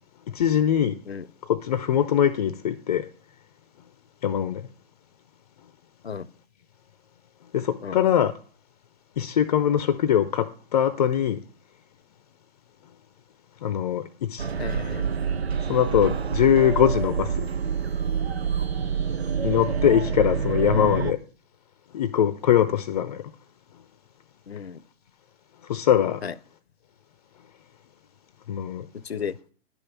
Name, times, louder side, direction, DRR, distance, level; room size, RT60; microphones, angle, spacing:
voice 1, 0.3-1.0 1.5-3.1 4.2-4.6 7.5-8.3 9.2-11.4 13.6-14.5 15.7-17.5 19.4-21.2 21.9-23.2 25.7-26.2 28.5-28.8, left 9 dB, 40° left, 0.6 m, -22 dB
sound 1, 14.4-21.1, right 6 dB, 80° right, 0.6 m, -27 dB
voice 2, 14.6-15.0 20.7-21.0 24.5-24.8 26.2-26.3 29.0-29.4, left 6 dB, 80° left, 0.7 m, -33 dB
11.0 x 5.4 x 7.3 m
figure-of-eight pair, 120°, 31 cm